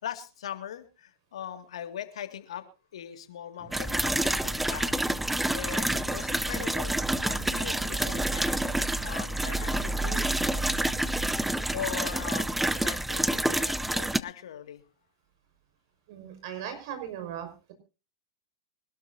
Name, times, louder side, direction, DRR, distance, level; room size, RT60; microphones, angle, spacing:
voice 1, 0.0-2.7 2.9-5.0 5.5-10.3 11.5-14.8, left 10 dB, 75° left, 9 dB, 2.2 m, -40 dB
sound 1, 3.6-11.9, right 3 dB, 20° right, 4.0 m, -50 dB
sound 2, 3.7-14.2, right 1 dB, 5° right, 0.7 m, -28 dB
voice 2, 16.1-17.7, right 9 dB, 60° right, 7 dB, 5.8 m, -38 dB
24.5 x 12.5 x 2.8 m, 0.32 s
hypercardioid pair, 115°, 3 cm